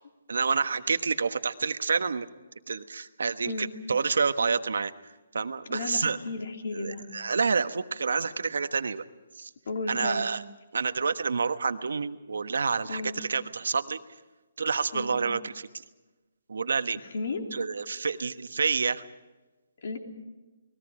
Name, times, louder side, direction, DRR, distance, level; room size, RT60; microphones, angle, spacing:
voice 1, 0.3-2.3 2.7-4.9 5.3-6.2 6.7-9.0 9.4-9.5 9.9-10.4 10.7-14.0 14.6-15.7 16.5-17.0 17.5-19.0, right 5 dB, 80° right, 10 dB, 1.2 m, -28 dB
voice 2, 5.7-7.0 9.6-10.3 12.9-13.2 14.9-15.3 17.0-17.4 19.8-20.0, left 3 dB, 50° left, 4 dB, 3.1 m, -34 dB
29.0 x 20.5 x 5.0 m, 1.2 s
hypercardioid pair, 175°, 0 cm